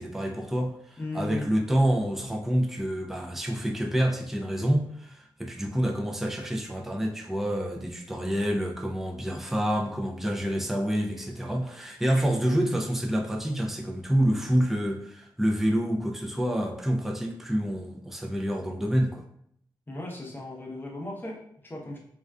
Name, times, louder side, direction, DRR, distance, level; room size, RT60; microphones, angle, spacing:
voice 1, 0.0-19.2, equal, 5° right, 1 dB, 0.4 m, -27 dB
voice 2, 1.0-1.6 19.9-22.0, left 2 dB, 25° left, -2 dB, 0.8 m, -37 dB
2.4 x 2.3 x 2.2 m, 0.70 s
cardioid pair, 65°, 8 cm